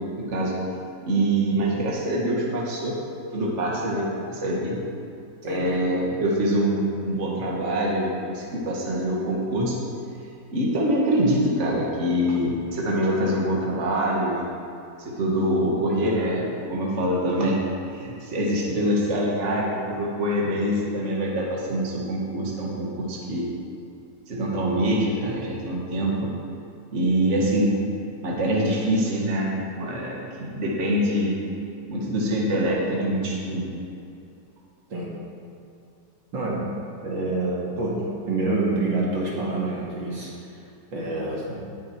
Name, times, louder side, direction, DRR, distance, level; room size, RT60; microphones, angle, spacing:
voice 1, 0.2-0.5 1.0-3.0 3.3-4.8 5.4-9.8 10.5-14.5 15.0-17.6 17.9-23.5 24.3-26.3 26.9-27.7 28.2-29.5 29.8-31.3 31.9-33.7, right 1 dB, 40° right, -3 dB, 2.0 m, -24 dB
voice 2, 36.3-36.6 37.0-38.0 38.3-40.3 40.9-41.6, right 2 dB, 75° right, -5 dB, 3.0 m, -27 dB
18.5 x 7.2 x 4.6 m, 2.6 s
omnidirectional pair, 2.0 m